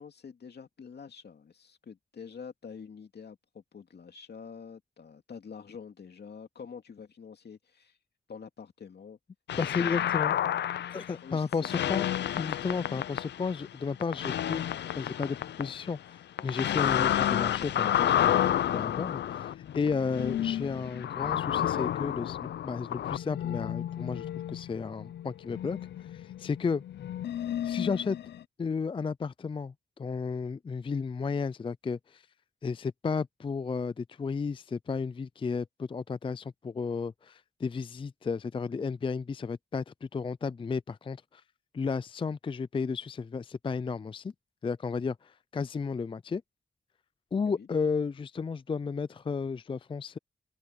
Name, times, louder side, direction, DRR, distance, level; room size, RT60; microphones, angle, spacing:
voice 1, 0.0-8.0 8.3-9.2 9.5-10.1 11.2-11.7 12.9-13.1 47.4-47.7, left 6 dB, 70° left, 2.5 m, -47 dB
sound 1, 9.5-11.2 11.5-13.7 14.0-16.0 16.4-28.4, left 11 dB, 90° left, 0.5 m, -31 dB
voice 2, 9.6-10.4 10.9-12.1 12.4-14.6 15.0-26.8 27.6-28.2 28.6-32.3 32.6-41.4 41.7-44.3 44.6-46.4 47.3-50.2, left 5 dB, 30° left, 0.4 m, -33 dB
open air
cardioid pair, 60°, 18 cm